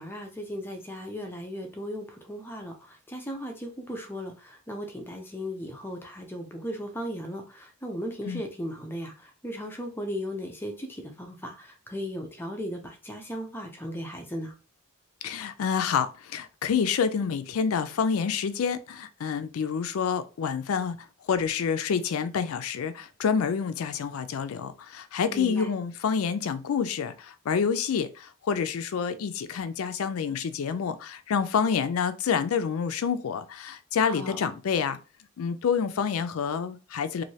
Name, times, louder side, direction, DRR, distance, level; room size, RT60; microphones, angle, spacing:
voice 1, 0.0-14.5 25.3-25.7 34.0-34.4, equal, 10° left, 0.4 m, -36 dB
voice 2, 15.2-21.0 21.3-35.0 35.4-37.2, left 6 dB, 85° left, 0.4 m, -28 dB
3.1 x 2.6 x 2.7 m
head